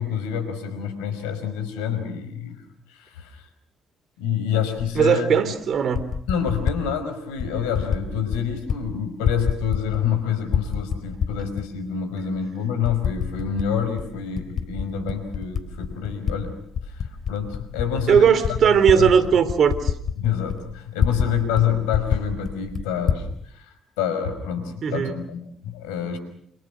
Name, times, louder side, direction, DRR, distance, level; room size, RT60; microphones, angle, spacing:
voice 1, 0.0-2.6 2.9-3.5 4.2-5.4 6.3-16.5 16.9-18.6 18.9-19.3 20.2-26.2, left 8 dB, 80° left, 9 dB, 5.4 m, -27 dB
Typing, 4.8-4.9 5.7-6.8 7.4-8.0 8.3-8.8 9.1-10.2 10.5-11.7 12.2-12.3 12.8-13.7 14.0-16.4 16.7-21.3 21.5-21.6 21.9-23.2, left 7 dB, 60° left, 3.4 m, -26 dB
voice 2, 5.0-6.1 18.1-19.9 24.8-25.1, right 7 dB, 60° right, 13 dB, 3.6 m, -18 dB
29.0 x 28.5 x 6.3 m, 0.65 s
hypercardioid pair, 50°, 0 cm